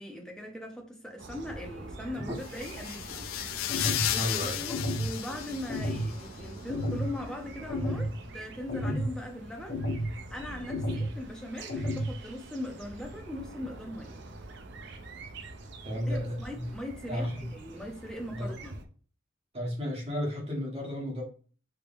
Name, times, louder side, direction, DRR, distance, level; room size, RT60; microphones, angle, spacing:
voice 1, 0.0-3.3 4.1-14.2 16.1-18.7, left 1 dB, 5° left, 0.6 m, -40 dB
sound 1, 1.2-18.9, right 2 dB, 55° right, 0.5 m, -45 dB
sound 2, 2.4-6.3, left 13 dB, 80° left, 0.3 m, -34 dB
sound 3, 3.7-4.1 4.7-5.1 5.7-6.1 6.7-7.1 7.7-8.1 8.7-9.1 9.7-10.1 10.7-11.1 11.7-12.1, equal, 60° left, 0.9 m, -31 dB
voice 2, 4.1-4.6 8.7-9.1 11.6-11.7 15.8-16.7 17.1-17.5 18.3-18.5 19.5-21.2, equal, 30° right, 1.2 m, -33 dB
3.5 x 3.1 x 2.5 m
head